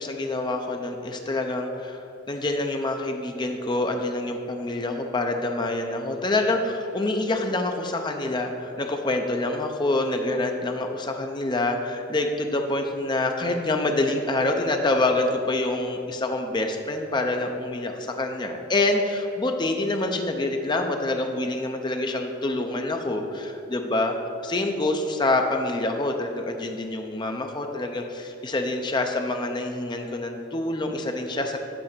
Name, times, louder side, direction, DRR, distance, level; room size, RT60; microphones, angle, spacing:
voice 1, 0.0-24.2 24.4-31.6, left 2 dB, 20° left, 4 dB, 0.5 m, -26 dB
8.6 x 3.4 x 6.6 m, 2.7 s
head